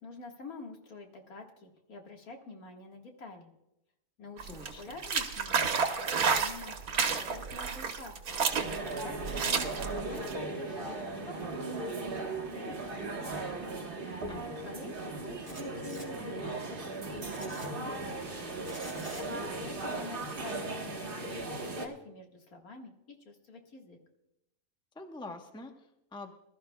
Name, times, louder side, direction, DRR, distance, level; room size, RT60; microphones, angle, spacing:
voice 1, 0.0-3.5 4.2-4.5 4.8-5.7 6.0-6.8 7.0-8.4 8.8-10.9 11.2-13.6 14.6-18.6 19.2-24.0, left 3 dB, 75° left, 2 dB, 2.2 m, -48 dB
sound 1, 4.4-10.3, right 5 dB, 90° right, 1.6 m, -31 dB
voice 2, 4.5-5.0 14.3-14.9 24.9-26.3, left 2 dB, 5° left, 4 dB, 0.8 m, -46 dB
sound 2, 8.6-21.9, right 2 dB, 40° right, 1.4 m, -37 dB
sound 3, 15.4-16.1 17.3-17.7 18.6-19.2, right 1 dB, 15° right, 2.8 m, -48 dB
21.5 x 13.0 x 2.3 m, 0.86 s
omnidirectional pair, 1.5 m